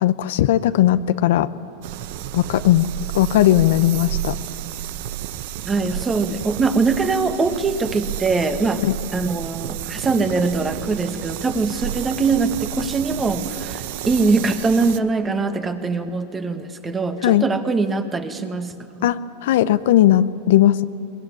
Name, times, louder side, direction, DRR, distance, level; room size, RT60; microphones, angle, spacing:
voice 1, 0.0-1.5 2.3-2.9 3.1-4.4 8.8-9.0 17.2-17.4 19.0-20.8, left 13 dB, 70° left, 13 dB, 0.7 m, -17 dB
sound 1, 1.8-15.0, right 12 dB, 65° right, 0.9 m, -31 dB
voice 2, 5.6-8.8 9.1-18.7 19.0-19.1, right 4 dB, 20° right, 7 dB, 1.8 m, -22 dB
22.0 x 21.0 x 9.6 m, 2.5 s
hypercardioid pair, 110°, 0 cm